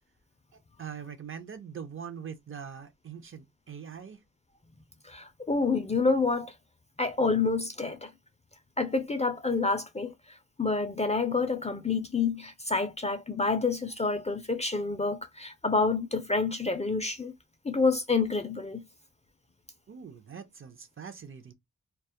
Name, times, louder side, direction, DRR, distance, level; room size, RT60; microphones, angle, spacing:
voice 1, 0.8-4.2 19.9-21.5, right 7 dB, 40° right, 0.4 m, -42 dB
voice 2, 5.1-6.5 7.0-8.1 8.8-10.1 10.6-17.3 17.7-18.8, left 4 dB, 20° left, 0.3 m, -28 dB
2.2 x 2.0 x 2.7 m
cardioid pair, 65°, 32 cm